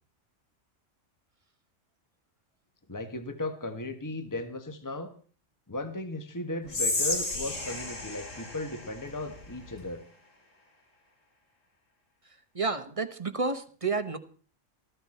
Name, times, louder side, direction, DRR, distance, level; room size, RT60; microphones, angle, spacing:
voice 1, 2.9-5.1 5.7-10.0, left 2 dB, 15° left, 8 dB, 1.5 m, -36 dB
Whispering, 6.7-9.9, left 2 dB, 80° left, 3.4 m, -33 dB
voice 2, 12.5-14.2, right 4 dB, 25° right, 10 dB, 1.3 m, -30 dB
19.5 x 14.5 x 4.4 m, 0.41 s
omnidirectional pair, 1.3 m